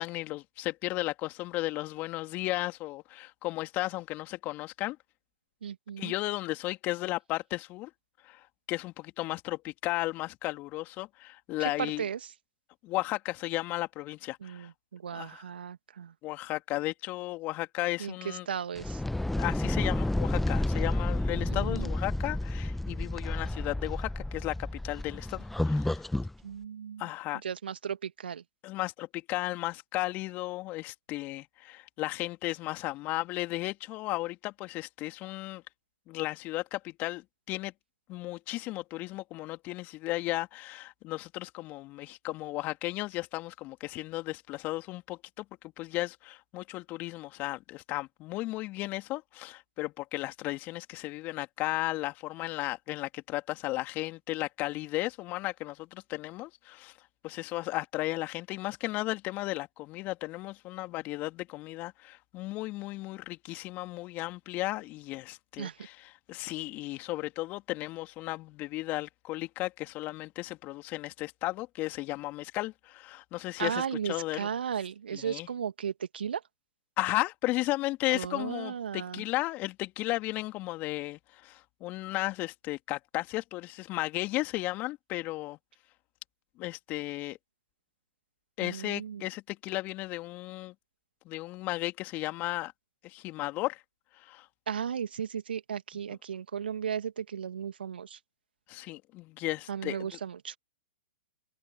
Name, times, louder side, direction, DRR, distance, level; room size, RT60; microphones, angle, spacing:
voice 1, 0.0-5.0 6.0-7.9 8.2-12.0 12.8-14.7 15.1-15.4 16.2-18.5 19.4-26.1 27.0-27.4 28.6-35.6 36.1-37.7 38.1-45.4 45.8-56.9 57.2-66.0 66.3-74.5 75.1-75.5 77.0-85.6 86.6-87.4 88.6-90.7 91.2-92.7 93.0-93.8 94.2-94.4 98.7-100.0, left 19 dB, 30° left, 2.7 m, -35 dB
voice 2, 5.6-6.2 11.6-12.3 14.4-16.1 18.0-19.0 21.3-21.9 26.4-27.1 27.4-28.4 65.6-65.8 73.6-76.4 78.1-79.2 88.6-89.3 94.7-98.2 99.7-100.6, right 8 dB, 70° right, 2.2 m, -35 dB
sound 1, 18.8-26.3, left 1 dB, 5° left, 1.1 m, -30 dB
figure-of-eight pair, 115°, 6 cm